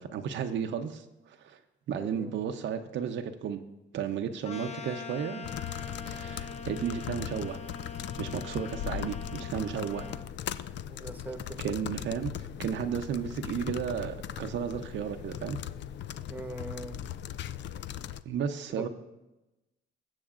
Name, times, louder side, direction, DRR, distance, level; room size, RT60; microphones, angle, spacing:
voice 1, 0.0-1.6 1.9-3.6 3.9-5.5 6.1-7.6 8.2-10.1 11.6-15.6 18.2-18.9, right 8 dB, 70° right, 6 dB, 0.8 m, -33 dB
voice 2, 2.0-2.3 10.9-11.6 16.3-17.0 18.7-18.9, right 1 dB, 10° right, 7 dB, 1.1 m, -41 dB
sound 1, 4.4-10.3, left 5 dB, 35° left, 0.7 m, -43 dB
sound 2, 5.4-18.2, left 10 dB, 65° left, 0.4 m, -39 dB
20.5 x 7.8 x 2.5 m, 1.0 s
cardioid pair, 90°, 20 cm